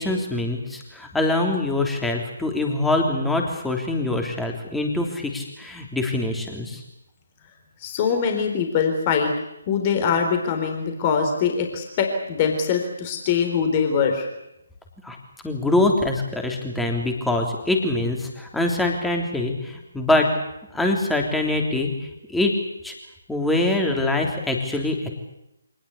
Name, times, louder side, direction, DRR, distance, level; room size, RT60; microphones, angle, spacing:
voice 1, 0.0-6.8 15.0-15.2 15.4-20.3 20.7-22.5 22.8-22.9 23.3-25.1, left 2 dB, 5° left, 2 dB, 3.4 m, -24 dB
voice 2, 7.8-9.3 9.7-14.3, left 6 dB, 30° left, 4 dB, 4.1 m, -23 dB
25.5 x 19.5 x 8.4 m, 0.87 s
figure-of-eight pair, 145°, 0 cm